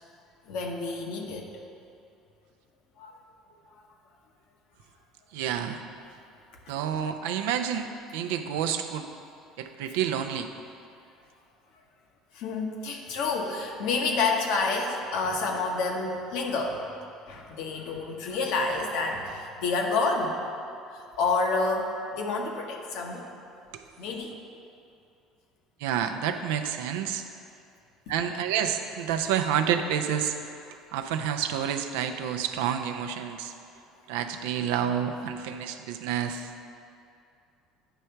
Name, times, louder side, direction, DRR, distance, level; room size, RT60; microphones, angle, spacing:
voice 1, 0.5-1.5 3.0-3.1 6.7-6.8 12.3-16.9 17.3-20.4 20.9-23.3 24.0-24.3 28.1-28.2, left 3 dB, 70° left, 1 dB, 0.9 m, -29 dB
voice 2, 5.3-5.8 6.7-9.1 9.6-10.5 25.8-27.2 28.1-33.5 34.1-36.5, right 8 dB, 80° right, 7 dB, 0.4 m, -29 dB
8.9 x 3.3 x 5.6 m, 2.5 s
hypercardioid pair, 80°, 0 cm